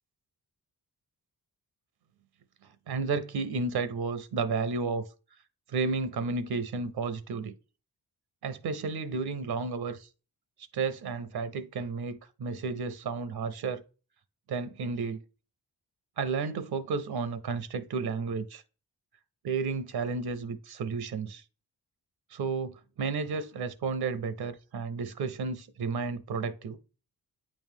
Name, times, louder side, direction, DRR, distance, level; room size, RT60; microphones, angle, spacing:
voice 1, 2.6-5.0 5.3-5.4 5.7-7.5 8.4-10.1 10.7-13.8 14.5-15.2 16.2-18.6 19.4-21.4 22.3-26.8, right 4 dB, 70° right, 0.6 m, -32 dB
8.7 x 3.1 x 3.6 m
cardioid pair, 75°, 39 cm